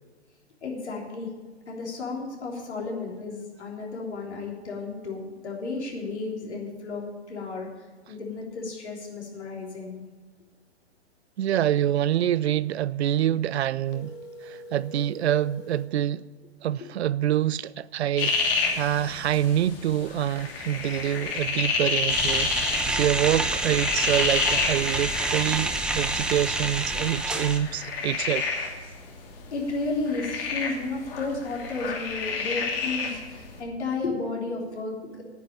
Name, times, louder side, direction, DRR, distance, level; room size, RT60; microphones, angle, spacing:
voice 1, 0.6-1.3 1.7-7.7 8.1-10.0 16.8-16.9 29.5-35.2, left 3 dB, 80° left, 3.5 m, -33 dB
voice 2, 11.4-14.1 14.4-16.3 16.6-28.5, right 11 dB, 75° right, 0.5 m, -26 dB
sound 1, 13.9-16.0, equal, 30° left, 1.3 m, -43 dB
sound 2, 18.2-33.6, left 4 dB, 55° left, 2.8 m, -30 dB
sound 3, 22.1-27.6, right 2 dB, 5° right, 0.5 m, -28 dB
9.3 x 8.4 x 8.9 m
hypercardioid pair, 125°, 33 cm